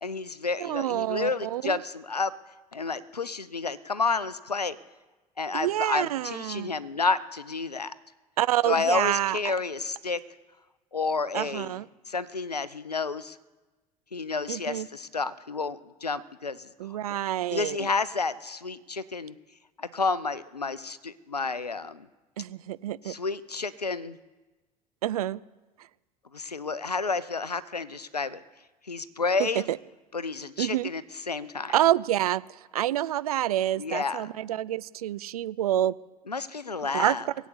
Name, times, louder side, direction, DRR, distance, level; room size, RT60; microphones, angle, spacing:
voice 1, 0.0-2.3 2.7-4.8 5.4-7.9 8.7-10.2 10.9-11.7 12.1-13.4 14.1-16.7 17.5-19.3 19.8-22.1 23.1-24.2 26.3-28.4 28.9-29.7 30.1-31.8 33.8-34.2 36.3-37.2, left 4 dB, 85° left, 16 dB, 0.6 m, -30 dB
voice 2, 0.6-1.8 5.5-6.8 8.4-9.5 11.3-11.9 14.5-14.9 16.8-17.9 22.4-23.1 25.0-25.4 29.4-29.8 30.6-30.9 31.7-36.0 36.9-37.2, right 13 dB, 70° right, 18 dB, 0.5 m, -27 dB
21.0 x 8.2 x 8.1 m, 1.2 s
figure-of-eight pair, 65°, 20 cm